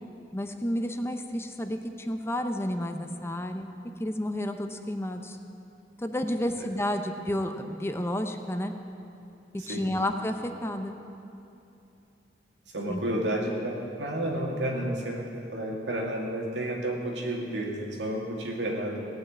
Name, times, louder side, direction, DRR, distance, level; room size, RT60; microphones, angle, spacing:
voice 1, 0.3-3.7 4.0-5.4 6.0-8.7 9.7-11.0 12.9-13.0, left 1 dB, 15° left, 6 dB, 0.6 m, -31 dB
voice 2, 9.6-10.0 12.7-19.1, right 1 dB, 80° right, -1 dB, 2.3 m, -31 dB
17.5 x 6.4 x 8.7 m, 2.8 s
head